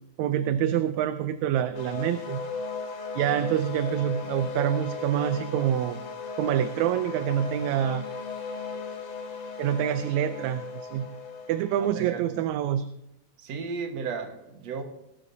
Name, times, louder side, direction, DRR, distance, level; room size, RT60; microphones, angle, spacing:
voice 1, 0.2-2.5 3.1-6.0 6.4-8.1 9.6-11.1 11.5-12.9, right 10 dB, 80° right, 10 dB, 1.9 m, -26 dB
sound 1, 1.7-12.1, left 4 dB, 85° left, 3.3 m, -36 dB
voice 2, 11.8-12.2 13.4-14.8, right 5 dB, 60° right, 5 dB, 2.5 m, -34 dB
19.0 x 12.0 x 2.8 m, 0.87 s
omnidirectional pair, 3.4 m